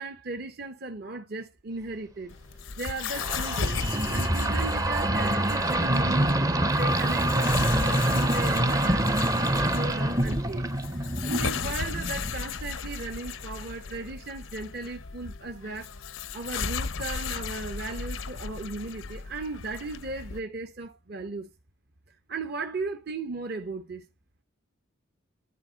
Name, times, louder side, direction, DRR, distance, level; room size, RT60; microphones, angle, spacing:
voice 1, 0.0-2.3 2.8-3.8 4.1-6.4 6.7-10.7 11.2-15.9 16.3-21.5 22.3-24.0, right 3 dB, 50° right, 0.8 m, -36 dB
sound 1, 2.3-20.4, left 5 dB, 85° left, 0.7 m, -36 dB
sound 2, 3.1-12.4, right 1 dB, 20° right, 0.6 m, -26 dB
12.0 x 4.4 x 3.9 m
head